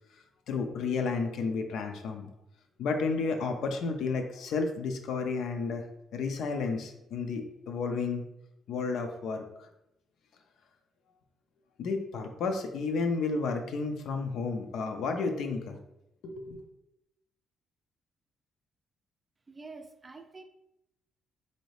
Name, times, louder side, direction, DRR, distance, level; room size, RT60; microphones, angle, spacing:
voice 1, 0.5-2.3 2.8-5.8 6.1-8.2 8.7-9.4 11.8-15.8 16.2-16.6, left 4 dB, 75° left, 5 dB, 0.5 m, -32 dB
voice 2, 19.5-20.4, right 3 dB, 25° right, 7 dB, 0.4 m, -47 dB
4.0 x 2.7 x 3.2 m, 0.85 s
cardioid pair, 90°, 0 cm